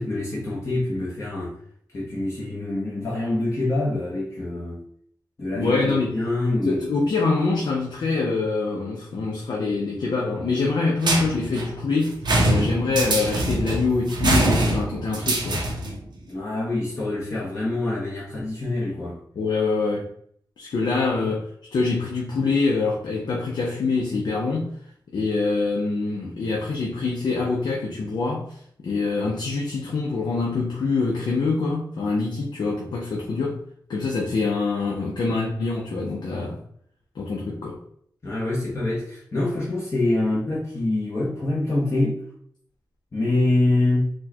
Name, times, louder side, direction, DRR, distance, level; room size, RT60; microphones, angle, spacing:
voice 1, 0.0-1.5 1.9-4.8 5.4-6.8 16.3-19.2 38.2-42.2 43.1-44.1, left 2 dB, 35° left, -6 dB, 0.9 m, -25 dB
voice 2, 5.6-6.2 6.6-12.2 12.4-15.6 19.4-20.1 20.6-24.7 25.1-28.6 28.8-33.6 33.9-36.6 37.2-37.8, left 3 dB, 75° left, -2 dB, 0.6 m, -25 dB
sound 1, 11.0-16.0, right 1 dB, 70° right, 0.7 m, -23 dB
4.3 x 2.3 x 2.8 m, 0.65 s
wide cardioid pair, 130°, 8 cm